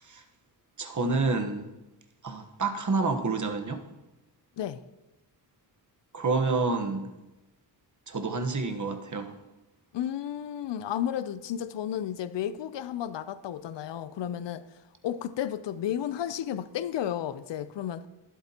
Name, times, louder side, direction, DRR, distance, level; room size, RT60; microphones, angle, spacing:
voice 1, 0.8-1.7 2.2-3.8 6.1-7.1 8.1-9.3, right 3 dB, 40° right, 1.2 m, -28 dB
voice 2, 9.9-14.6 15.0-18.1, left 10 dB, 70° left, 0.6 m, -32 dB
22.0 x 7.7 x 2.9 m
wide cardioid pair, 95°, 46 cm